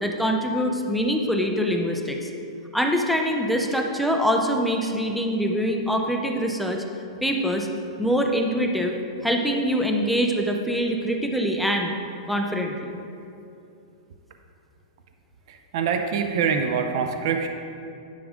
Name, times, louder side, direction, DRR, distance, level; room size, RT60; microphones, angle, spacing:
voice 1, 0.0-2.3 2.7-6.8 7.2-7.7 8.0-8.9 9.2-11.9 12.3-13.0, equal, ahead, 1 dB, 0.5 m, -24 dB
voice 2, 15.5-17.5, right 6 dB, 50° right, 6 dB, 0.6 m, -25 dB
10.5 x 6.3 x 3.6 m, 2.6 s
supercardioid pair, 165°, 3 cm